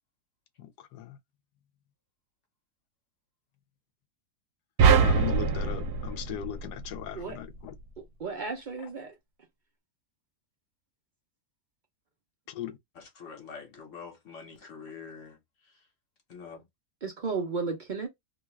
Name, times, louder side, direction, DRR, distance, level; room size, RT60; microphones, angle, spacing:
voice 1, 0.6-1.2 5.0-7.7 12.5-12.8, left 11 dB, 85° left, 1.1 m, -38 dB
sound 1, 4.8-7.2, right 5 dB, 80° right, 1.1 m, -23 dB
voice 2, 8.2-9.1 17.0-18.1, right 4 dB, 60° right, 0.5 m, -33 dB
voice 3, 13.2-15.4 16.3-16.6, left 5 dB, 55° left, 1.2 m, -45 dB
2.9 x 2.3 x 3.1 m
omnidirectional pair, 1.7 m